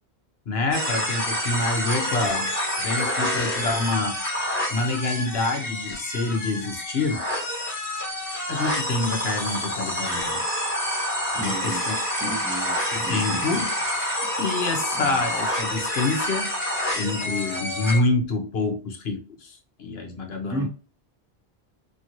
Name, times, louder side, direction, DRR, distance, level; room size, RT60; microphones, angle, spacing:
voice 1, 0.5-2.5 2.8-4.2 4.7-7.2 8.5-10.4 11.3-12.0 12.2-12.3 12.9-13.7 14.3-16.5 16.9-20.7, left 3 dB, 70° left, 3 dB, 1.1 m, -27 dB
sound 1, 0.7-18.0, equal, 10° left, 1.0 m, -28 dB
voice 2, 11.2-11.8 12.2-13.6 14.9-15.2 20.5-20.7, right 1 dB, 5° right, 1 dB, 0.6 m, -34 dB
2.9 x 2.8 x 2.6 m, 0.36 s
omnidirectional pair, 1.1 m